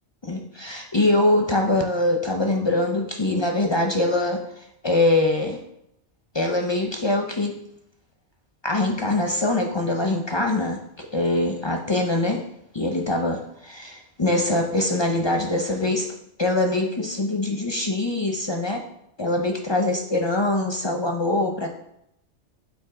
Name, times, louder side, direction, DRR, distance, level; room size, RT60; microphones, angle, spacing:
voice 1, 0.2-4.4 4.8-5.6 6.3-7.6 8.6-12.5 12.7-16.1 16.4-18.8 19.2-21.7, left 2 dB, 40° left, 2 dB, 0.4 m, -23 dB
7.7 x 2.8 x 4.7 m, 0.79 s
omnidirectional pair, 1.2 m